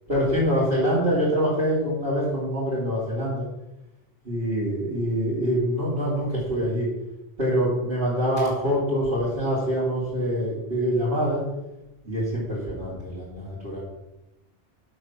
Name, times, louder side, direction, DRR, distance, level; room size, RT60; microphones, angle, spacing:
voice 1, 0.1-3.5 4.2-6.9 7.4-11.4 12.0-13.8, equal, 65° right, -10 dB, 3.7 m, -25 dB
7.7 x 6.4 x 7.4 m, 0.93 s
omnidirectional pair, 1.1 m